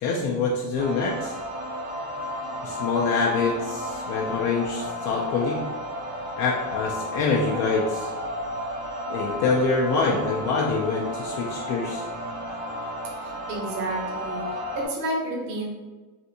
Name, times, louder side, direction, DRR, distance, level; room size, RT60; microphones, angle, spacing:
voice 1, 0.0-1.3 2.6-5.6 6.4-8.1 9.1-12.1, left 4 dB, 50° left, -2 dB, 0.5 m, -25 dB
sound 1, 0.8-14.9, equal, 70° right, 1.3 m, -33 dB
voice 2, 13.2-14.4 14.7-15.7, right 1 dB, 50° right, -2 dB, 0.8 m, -30 dB
3.3 x 2.6 x 2.7 m, 1.2 s
cardioid pair, 155°, 37 cm